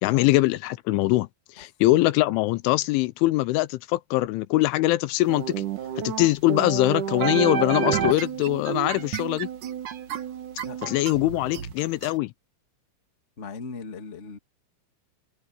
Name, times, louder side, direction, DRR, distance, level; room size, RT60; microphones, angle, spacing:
voice 1, 0.0-1.3 1.6-5.6 6.0-9.5 10.8-12.3, left 18 dB, 85° left, 3.1 m, -22 dB
sound 1, 5.3-12.1, right 8 dB, 60° right, 2.3 m, -30 dB
voice 2, 13.4-14.4, left 5 dB, 35° left, 1.2 m, -39 dB
omnidirectional pair, 5.6 m